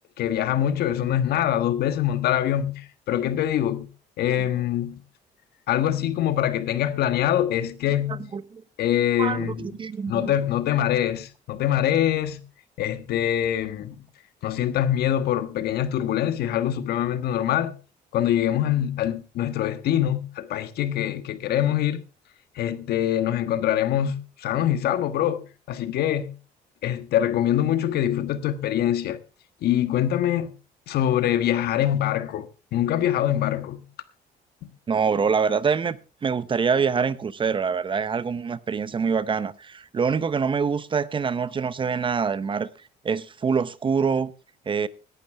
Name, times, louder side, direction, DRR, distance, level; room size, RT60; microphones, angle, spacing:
voice 1, 0.2-3.9 4.2-5.0 5.7-8.2 8.8-9.7 10.1-12.4 12.8-14.0 14.4-17.7 18.1-22.0 22.6-26.3 26.8-29.2 29.6-30.5 30.9-33.8, left 11 dB, 70° left, 1.4 m, -24 dB
voice 2, 9.2-10.3 34.9-42.7 43.0-44.3 44.7-44.9, right 5 dB, 30° right, 0.8 m, -25 dB
17.5 x 11.5 x 3.5 m
cardioid pair, 110°, 17 cm